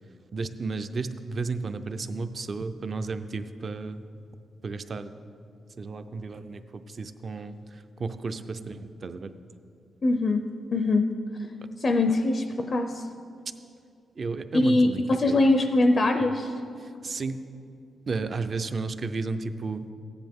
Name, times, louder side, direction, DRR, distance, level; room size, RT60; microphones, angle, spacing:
voice 1, 0.3-4.0 4.6-5.1 5.8-7.6 8.0-9.3 14.2-15.4 17.0-17.4 18.1-19.9, right 4 dB, 40° right, 10 dB, 0.4 m, -33 dB
voice 2, 10.0-10.4 10.7-11.1 11.8-13.1 14.5-16.5, left 2 dB, 35° left, 6 dB, 0.4 m, -22 dB
14.5 x 9.8 x 3.6 m, 2.5 s
wide cardioid pair, 165°, 0 cm